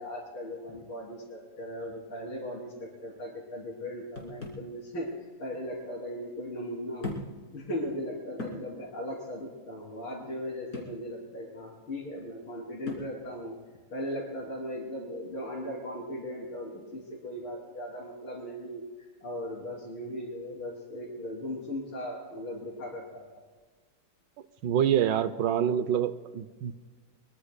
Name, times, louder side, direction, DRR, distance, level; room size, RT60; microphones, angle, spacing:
voice 1, 0.0-7.2 7.5-13.6 13.9-23.4, equal, 70° left, -5 dB, 4.0 m, -38 dB
sound 1, 4.2-4.7 5.8-5.9 7.0-7.4 7.8-7.9 8.4-8.7 10.7-11.0 12.9-13.2, left 2 dB, 40° left, 3.2 m, -39 dB
voice 2, 24.6-26.7, right 9 dB, 70° right, 12 dB, 1.1 m, -26 dB
23.5 x 23.0 x 2.2 m, 1.4 s
omnidirectional pair, 2.4 m